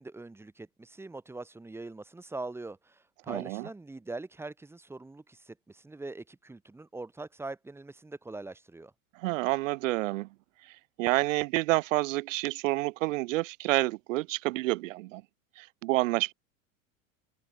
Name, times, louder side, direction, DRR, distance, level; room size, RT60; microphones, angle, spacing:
voice 1, 0.0-8.9, right 2 dB, 5° right, 0.8 m, -42 dB
voice 2, 3.3-3.7 9.2-10.3 11.0-15.2 15.6-16.3, right 20 dB, 70° right, 0.5 m, -29 dB
open air
hypercardioid pair, 90°, 41 cm